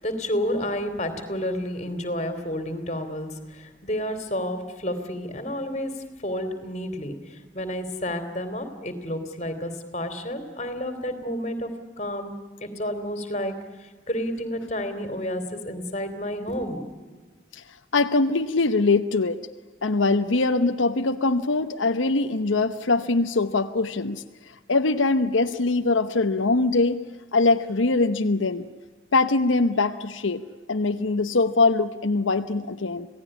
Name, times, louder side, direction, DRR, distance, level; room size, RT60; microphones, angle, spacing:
voice 1, 0.0-5.9 6.2-11.7 12.0-12.3 12.6-13.5 13.8-16.8, equal, 35° left, 9 dB, 3.0 m, -30 dB
voice 2, 17.5-19.4 19.8-27.0 27.3-28.6 29.1-30.4 30.7-33.1, left 3 dB, 85° left, 7 dB, 0.9 m, -22 dB
27.0 x 17.5 x 9.9 m, 1.4 s
head